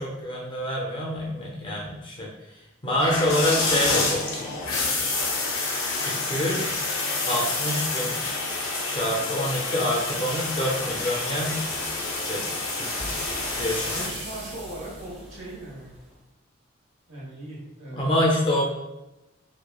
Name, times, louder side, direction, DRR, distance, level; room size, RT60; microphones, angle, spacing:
voice 1, 0.0-4.3 6.0-6.7 7.2-8.2 8.9-11.6 12.3-12.5 13.5-14.3 17.9-18.6, left 1 dB, 25° left, -2 dB, 0.4 m, -26 dB
sound 1, 3.0-14.1, left 3 dB, 85° left, 0.5 m, -28 dB
sound 2, 9.5-16.1, right 1 dB, 30° right, 0.7 m, -39 dB
voice 2, 13.9-15.9 17.1-18.2, right 1 dB, 70° right, -6 dB, 1.1 m, -39 dB
2.9 x 2.2 x 2.2 m, 0.97 s
head